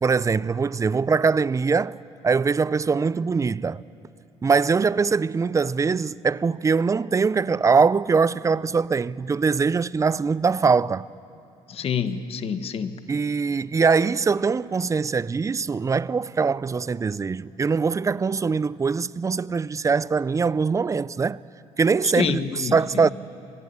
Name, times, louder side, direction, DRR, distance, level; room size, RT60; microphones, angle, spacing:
voice 1, 0.0-2.0 2.2-3.8 4.4-11.1 13.1-21.4 21.8-23.1, right 5 dB, 25° right, 0.6 m, -22 dB
voice 2, 11.7-13.0 22.0-22.8, left 7 dB, 50° left, 1.6 m, -27 dB
26.5 x 21.5 x 9.9 m
supercardioid pair, 80°, 12 cm